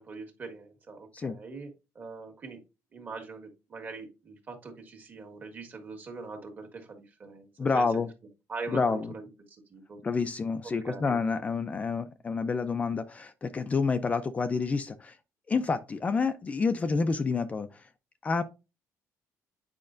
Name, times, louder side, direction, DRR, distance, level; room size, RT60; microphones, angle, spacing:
voice 1, 0.0-1.7 1.9-2.6 2.9-7.5 7.7-8.1 8.5-10.0 10.6-11.2, right 4 dB, 35° right, 1.7 m, -42 dB
voice 2, 7.6-8.1 8.7-9.1 10.0-15.2 15.5-17.8 18.2-18.4, left 4 dB, 25° left, 0.5 m, -28 dB
8.7 x 5.2 x 2.6 m
cardioid pair, 145°, 6 cm